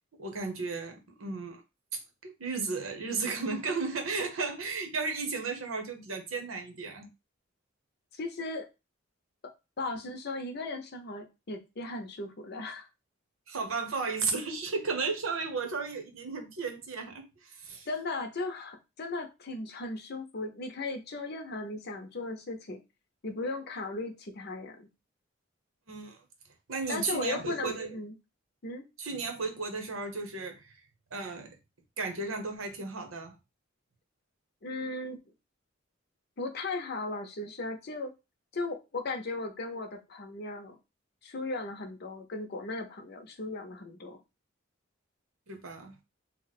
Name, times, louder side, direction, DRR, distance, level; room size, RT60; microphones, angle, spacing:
voice 1, 0.2-1.6 1.9-7.1 13.5-17.9 25.9-26.2 26.7-27.9 29.0-30.8 31.1-31.5 32.0-33.3 45.5-46.0, right 4 dB, 85° right, 0.9 m, -34 dB
voice 2, 8.1-8.7 9.8-12.9 17.9-22.8 23.2-24.9 26.9-28.1 28.6-28.8 34.6-35.2 36.4-38.1 38.5-40.8 41.2-44.2, left 2 dB, 55° left, 0.7 m, -37 dB
2.9 x 2.1 x 4.0 m
head